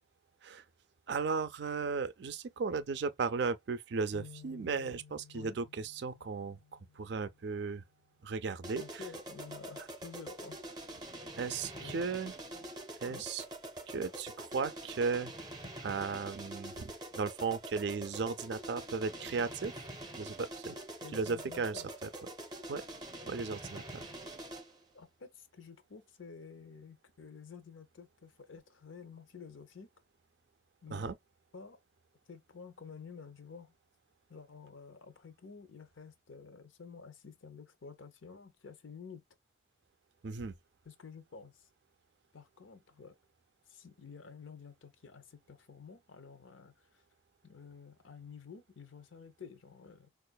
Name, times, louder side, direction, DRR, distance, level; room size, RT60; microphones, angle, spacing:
voice 1, 1.1-7.8 8.2-9.0 11.4-12.3 13.0-13.4 13.9-15.3 15.8-19.7 20.2-20.8 21.1-22.1 22.7-22.8 23.3-24.1 30.9-31.1 40.2-40.6, right 4 dB, 60° right, 0.4 m, -36 dB
sound 1, 4.1-7.6, left 6 dB, 40° left, 0.5 m, -56 dB
sound 2, 8.6-24.8, right 1 dB, 20° right, 0.7 m, -45 dB
voice 2, 8.8-10.6 11.7-12.0 12.5-12.6 13.1-13.2 21.0-21.9 24.9-29.9 30.8-31.1 31.5-31.8 32.3-33.7 34.3-39.2 40.8-41.7 42.3-43.1 43.7-47.0 47.4-50.1, left 5 dB, 85° left, 0.7 m, -51 dB
4.6 x 2.4 x 2.2 m
head